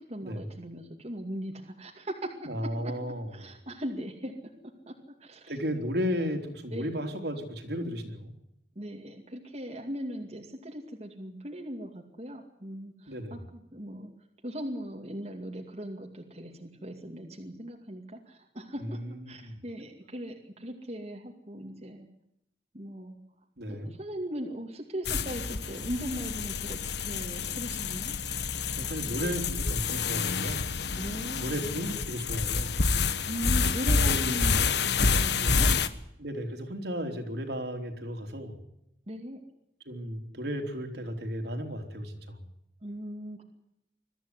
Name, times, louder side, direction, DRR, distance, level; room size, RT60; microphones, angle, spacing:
voice 1, 0.0-2.3 3.3-4.3 4.9-5.0 5.2-5.9 6.7-6.9 8.8-14.1 14.4-19.0 19.3-22.1 22.7-23.2 23.7-28.2 31.0-31.6 33.3-35.7 39.1-39.4 42.8-43.4, equal, 35° right, 1 dB, 2.4 m, -39 dB
voice 2, 2.5-3.3 5.5-8.3 13.1-13.5 18.8-19.6 23.6-23.9 28.7-30.7 31.4-32.8 34.0-34.4 36.2-38.6 39.9-42.4, equal, 65° right, 4 dB, 3.6 m, -34 dB
sound 1, 25.0-35.9, left 5 dB, 65° left, 1.2 m, -28 dB
22.5 x 14.0 x 9.7 m, 0.78 s
head